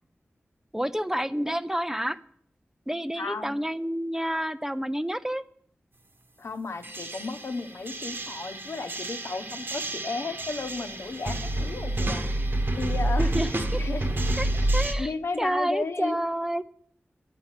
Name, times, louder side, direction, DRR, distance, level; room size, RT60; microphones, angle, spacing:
voice 1, 0.7-2.2 2.9-5.4 13.2-13.8 14.3-16.6, equal, 10° right, 12 dB, 0.6 m, -29 dB
voice 2, 3.2-3.5 6.4-12.3 12.7-14.3 14.5-14.7 15.0-16.2, left 3 dB, 75° left, 7 dB, 1.1 m, -34 dB
sound 1, 6.8-14.9, right 1 dB, 55° right, 1.2 m, -29 dB
11.0 x 9.6 x 7.4 m, 0.65 s
wide cardioid pair, 70°, 4 cm